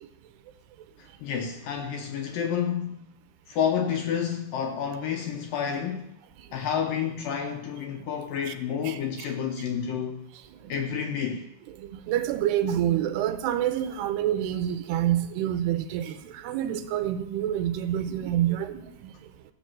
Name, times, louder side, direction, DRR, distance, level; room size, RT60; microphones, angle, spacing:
voice 1, 1.0-3.0 3.5-6.1 6.5-10.2 10.7-11.4, left 8 dB, 70° left, 2.2 m, -29 dB
voice 2, 11.8-19.1, right 11 dB, 80° right, 2.7 m, -27 dB
14.0 x 6.9 x 7.3 m
omnidirectional pair, 4.8 m